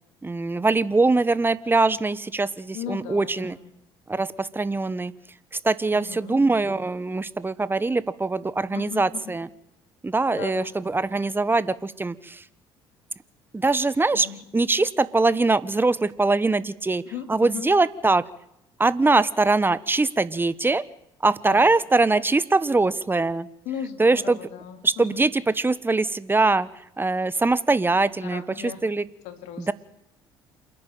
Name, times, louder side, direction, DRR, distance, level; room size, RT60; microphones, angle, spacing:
voice 1, 0.2-3.6 4.1-5.1 5.6-9.5 10.0-12.4 13.5-14.3 14.5-17.0 17.3-18.2 18.8-20.8 21.2-23.5 24.0-24.4 24.8-26.7 27.0-29.0 29.6-29.7, right 3 dB, 15° right, 17 dB, 1.1 m, -22 dB
voice 2, 2.7-3.7 5.9-6.4 8.7-9.3 10.3-10.7 14.1-14.4 17.0-17.7 21.5-21.7 23.6-25.3 28.2-28.8 29.2-29.7, left 9 dB, 70° left, 7 dB, 2.7 m, -37 dB
27.5 x 10.5 x 9.2 m, 0.83 s
hypercardioid pair, 60°, 12 cm